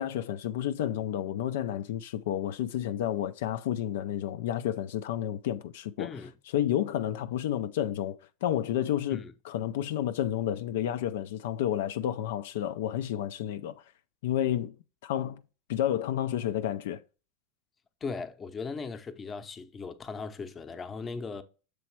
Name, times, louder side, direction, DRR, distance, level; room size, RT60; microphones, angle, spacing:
voice 1, 0.0-6.1 6.5-13.8 14.2-14.7 15.0-15.4 15.7-17.0, left 11 dB, 80° left, 0.4 m, -30 dB
voice 2, 6.0-6.3 9.1-9.3 18.0-21.4, left 4 dB, 25° left, 0.7 m, -38 dB
6.9 x 3.2 x 4.5 m
supercardioid pair, 120°, 0 cm